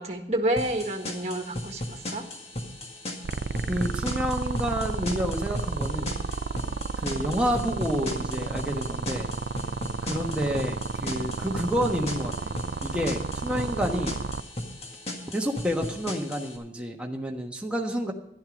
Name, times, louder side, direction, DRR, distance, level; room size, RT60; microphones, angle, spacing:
voice 1, 0.0-2.3, right 1 dB, 35° right, 4 dB, 1.5 m, -29 dB
sound 1, 0.6-16.6, left 1 dB, 35° left, 1.8 m, -37 dB
sound 2, 3.2-14.4, right 4 dB, 65° right, 0.5 m, -32 dB
voice 2, 3.7-6.1 7.0-9.3 10.0-12.5 12.8-14.2 15.3-18.1, equal, 5° right, 1 dB, 1.3 m, -29 dB
11.5 x 11.5 x 5.1 m, 0.78 s
head